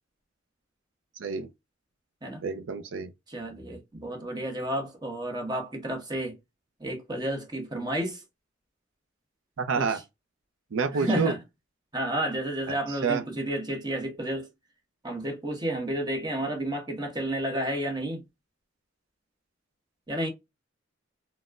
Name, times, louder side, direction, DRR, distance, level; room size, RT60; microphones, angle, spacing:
voice 1, 2.4-3.1 9.6-10.0 10.7-11.3 13.0-13.2, right 5 dB, 75° right, 0.5 m, -28 dB
voice 2, 3.3-6.4 6.8-8.2 9.8-10.0 10.9-11.4 11.9-14.5 15.0-18.2 20.1-20.3, right 1 dB, 20° right, 1.1 m, -31 dB
4.1 x 2.1 x 2.3 m
head